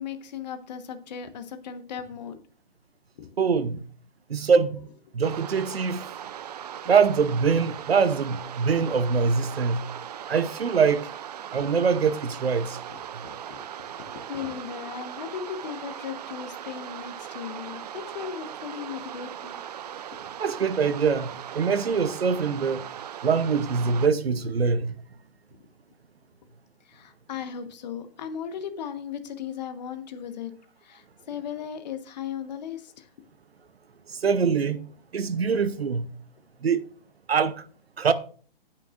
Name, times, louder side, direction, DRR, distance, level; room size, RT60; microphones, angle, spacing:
voice 1, 0.0-2.4 3.2-3.3 12.9-13.0 13.2-19.6 26.8-30.5 30.8-33.1, left 8 dB, 45° left, 1.3 m, -37 dB
voice 2, 3.4-3.8 4.3-4.9 5.1-6.1 6.9-9.9 10.3-11.1 11.5-12.8 20.4-22.8 23.2-25.0 34.1-34.8 35.1-36.1 36.6-36.8 37.3-37.6 38.0-38.1, right 5 dB, 85° right, 0.9 m, -23 dB
sound 1, 5.2-24.1, right 10 dB, 45° right, 0.5 m, -39 dB
18.0 x 5.9 x 2.5 m
hypercardioid pair, 140°, 30 cm